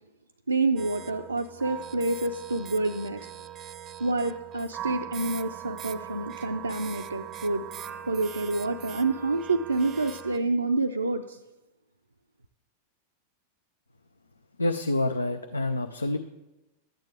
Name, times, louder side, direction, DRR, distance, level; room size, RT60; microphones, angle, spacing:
voice 1, 0.5-3.3 4.0-7.6 8.1-11.4, right 3 dB, 80° right, 3 dB, 0.4 m, -28 dB
sound 1, 0.8-10.4, right 10 dB, 30° right, 0.5 m, -41 dB
voice 2, 14.6-16.2, left 2 dB, 80° left, 7 dB, 0.4 m, -27 dB
13.0 x 9.0 x 3.5 m, 1.0 s
figure-of-eight pair, 90°, 0 cm